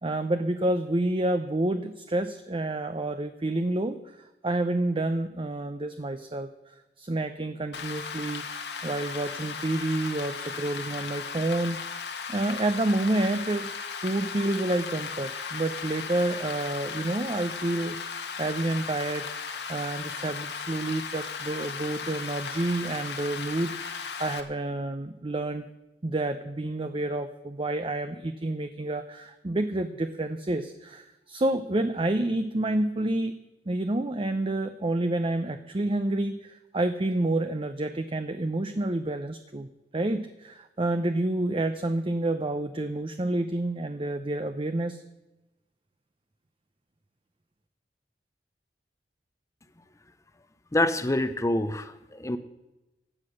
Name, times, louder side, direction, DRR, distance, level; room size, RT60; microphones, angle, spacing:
voice 1, 0.0-11.8 12.3-25.7 26.0-33.4 33.7-39.7 39.9-45.0, right 2 dB, 30° right, 9 dB, 0.6 m, -29 dB
Rain, 7.7-24.4, left 5 dB, 65° left, 1.5 m, -36 dB
voice 2, 50.7-52.4, left 1 dB, 20° left, 9 dB, 0.6 m, -26 dB
16.0 x 9.8 x 6.5 m, 0.97 s
head